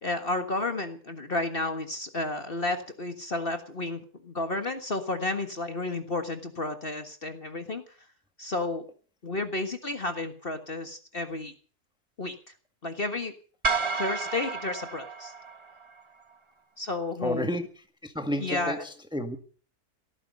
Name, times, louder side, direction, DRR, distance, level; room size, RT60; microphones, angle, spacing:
voice 1, 0.0-7.8 8.4-8.8 9.2-11.5 12.2-12.4 12.8-13.3 14.0-15.3 16.8-17.5 18.4-18.8, left 2 dB, 35° left, 7 dB, 1.7 m, -32 dB
sound 1, 13.6-16.0, right 4 dB, 25° right, 0.9 m, -31 dB
voice 2, 17.2-17.7 18.0-19.4, equal, 5° right, 7 dB, 1.6 m, -31 dB
18.0 x 14.5 x 5.4 m, 0.41 s
omnidirectional pair, 1.7 m